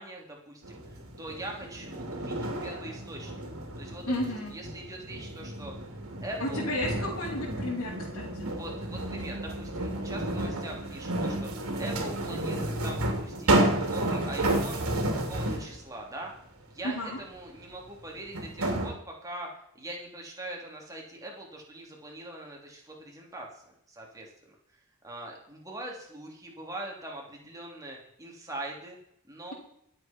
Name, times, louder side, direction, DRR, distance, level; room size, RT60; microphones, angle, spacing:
voice 1, 0.0-3.4 3.8-5.7 6.2-6.7 8.5-14.8 15.3-16.3 16.7-24.3 25.0-29.0 29.3-29.5, right 1 dB, 15° right, -1 dB, 3.3 m, -42 dB
sound 1, 0.6-15.8 17.5-17.6 18.3-18.9, right 1 dB, 85° right, 3.2 m, -31 dB
voice 2, 4.0-4.5 6.4-8.5 16.8-17.2, left 1 dB, 75° left, -7 dB, 4.8 m, -32 dB
24.5 x 8.3 x 4.6 m, 0.74 s
head